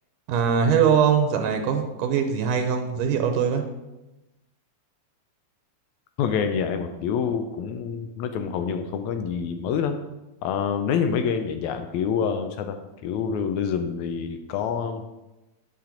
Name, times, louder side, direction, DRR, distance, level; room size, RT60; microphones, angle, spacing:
voice 1, 0.3-3.6, right 7 dB, 85° right, 5 dB, 2.2 m, -22 dB
voice 2, 6.2-10.0 10.4-15.0, left 7 dB, 80° left, 7 dB, 1.7 m, -27 dB
8.7 x 5.8 x 3.8 m, 1.0 s
omnidirectional pair, 3.8 m